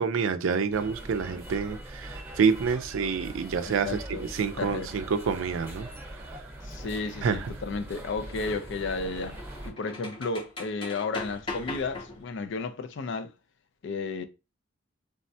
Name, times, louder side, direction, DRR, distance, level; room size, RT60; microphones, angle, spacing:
voice 1, 0.0-6.3 7.2-7.5, right 5 dB, 70° right, 0.4 m, -28 dB
sound 1, 0.7-9.7, right 1 dB, 10° right, 0.9 m, -42 dB
voice 2, 3.6-4.3 4.6-4.9 6.6-9.4 9.6-13.3 13.8-14.2, left 4 dB, 60° left, 0.4 m, -33 dB
sound 2, 5.9-6.0 8.4-12.5, left 3 dB, 25° left, 0.6 m, -40 dB
3.4 x 2.1 x 2.6 m
head